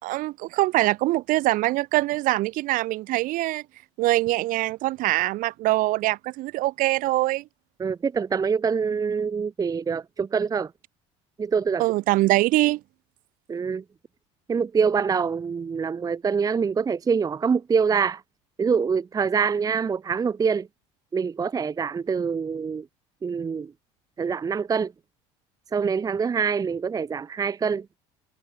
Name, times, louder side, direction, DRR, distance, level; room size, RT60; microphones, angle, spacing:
voice 1, 0.0-3.6 4.0-7.4 11.8-12.8, right 18 dB, 65° right, 1.6 m, -23 dB
voice 2, 7.8-10.7 11.4-11.8 13.5-13.8 14.5-18.2 18.6-20.7 21.1-22.9 23.2-23.7 24.2-24.9 25.7-27.9, right 6 dB, 25° right, 0.7 m, -25 dB
supercardioid pair, 85°, 15 cm